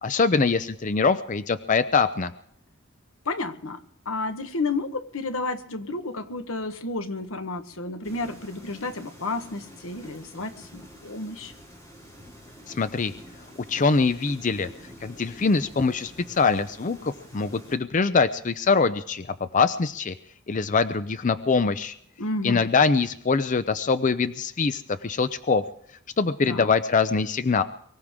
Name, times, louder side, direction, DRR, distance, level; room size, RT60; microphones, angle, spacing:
voice 1, 0.0-2.3 12.7-13.1 13.7-14.7 15.0-19.3 19.5-20.1 20.5-21.9 22.4-25.6 26.2-27.6, left 4 dB, 40° left, 12 dB, 0.5 m, -23 dB
voice 2, 3.2-3.8 4.0-11.5 22.2-22.6 26.5-26.7, left 3 dB, 85° left, 8 dB, 1.3 m, -31 dB
sound 1, 8.0-17.8, equal, 15° left, 3.9 m, -47 dB
23.5 x 15.5 x 3.7 m, 0.66 s
head